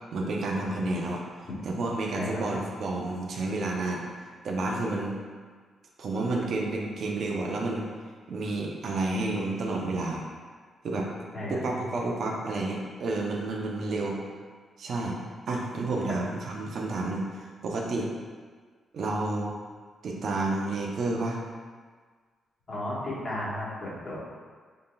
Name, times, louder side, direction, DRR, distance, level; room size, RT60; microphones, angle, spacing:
voice 1, 0.1-1.2 1.6-4.0 4.4-5.2 6.0-7.9 8.3-10.2 10.8-11.1 11.5-14.2 14.8-15.2 15.5-18.1 18.9-19.6 20.0-21.4, right 2 dB, 60° right, -1 dB, 0.5 m, -30 dB
voice 2, 22.7-24.2, left 1 dB, 45° left, -8 dB, 1.2 m, -34 dB
3.8 x 3.7 x 2.2 m, 1.6 s
cardioid pair, 135°, 0 cm